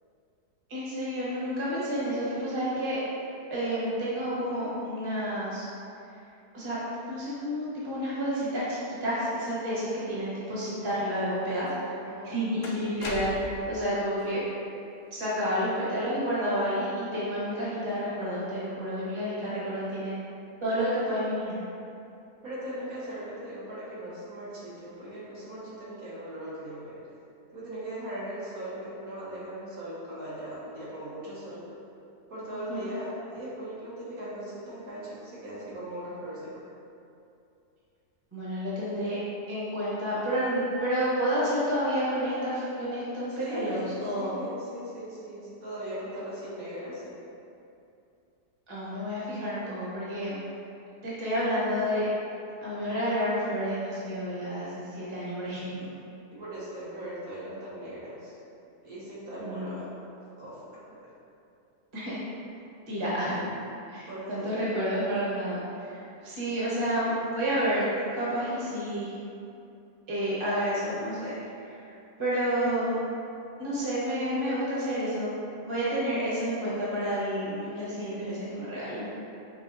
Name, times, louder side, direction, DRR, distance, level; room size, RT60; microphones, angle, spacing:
voice 1, 0.7-3.0 3.5-5.6 6.5-6.8 7.1-11.9 12.2-14.4 15.1-20.1 20.6-21.6 32.7-32.9 38.3-39.2 39.5-44.3 48.7-50.4 51.0-52.1 52.6-55.8 59.4-59.7 61.9-62.2 62.9-63.4 63.9-67.9 68.1-69.1 70.1-71.3 71.6-73.0 73.6-75.3 75.6-79.1, equal, 20° right, -9 dB, 0.9 m, -30 dB
sound 1, 11.7-11.8 12.6-13.7, left 1 dB, 65° left, 0.9 m, -37 dB
voice 2, 12.0-12.4 22.4-27.0 27.5-31.7 32.3-36.6 43.4-47.1 56.3-58.3 58.8-59.9 60.4-60.6 64.1-64.5, right 1 dB, 65° right, -9 dB, 1.4 m, -39 dB
5.4 x 3.3 x 2.6 m, 2.7 s
omnidirectional pair, 1.7 m